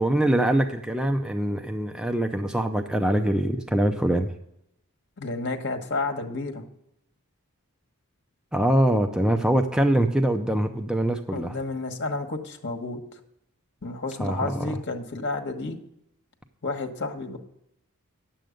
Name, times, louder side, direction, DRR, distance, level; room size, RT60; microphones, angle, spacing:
voice 1, 0.0-4.3 8.5-11.5 14.2-14.7, right 1 dB, 5° right, 5 dB, 0.5 m, -23 dB
voice 2, 5.2-6.6 11.3-13.0 13.8-15.8 16.6-17.4, left 3 dB, 55° left, 4 dB, 1.3 m, -31 dB
9.7 x 7.7 x 5.1 m, 0.78 s
head